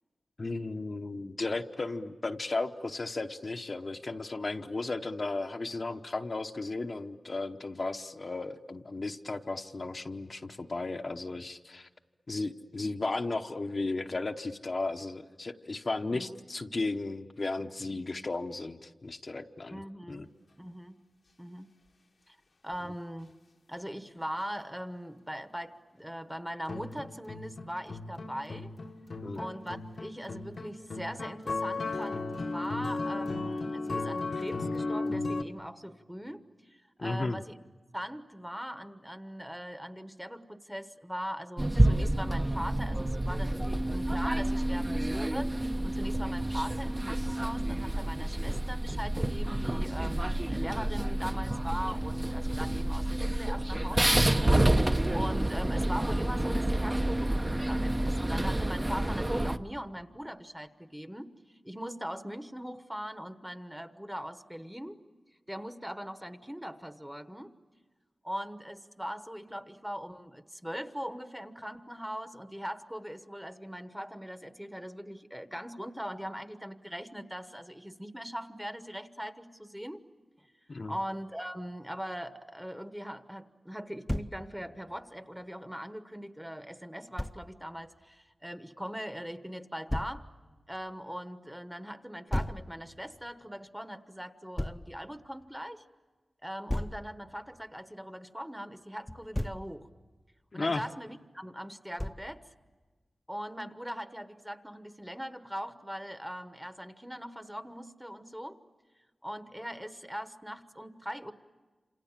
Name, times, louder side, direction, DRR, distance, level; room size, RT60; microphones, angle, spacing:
voice 1, 0.4-11.9 12.3-19.8 20.1-20.3 29.2-29.5 37.0-37.4 59.4-59.5 80.7-80.9 100.5-100.8, left 3 dB, 50° left, 5 dB, 0.9 m, -35 dB
voice 2, 19.7-20.3 20.6-21.0 21.4-21.7 22.3-22.4 22.6-23.3 23.7-28.7 29.4-37.5 37.9-65.0 65.5-67.5 68.2-80.0 80.4-80.5 80.8-90.3 90.7-95.8 96.4-99.9 100.5-102.5 103.3-108.6 109.2-111.3, equal, 5° right, 10 dB, 1.1 m, -40 dB
sound 1, 26.7-35.4, left 3 dB, 70° left, 1.2 m, -35 dB
sound 2, 41.6-59.6, right 1 dB, 25° right, 0.9 m, -29 dB
Thump thud, 84.1-84.4 87.2-87.4 89.9-90.2 92.3-92.6 94.6-94.8 96.7-97.0 99.1-99.7 102.0-102.3, left 1 dB, 15° left, 0.8 m, -33 dB
28.0 x 27.5 x 7.4 m, 1.3 s
wide cardioid pair, 70°, 0 cm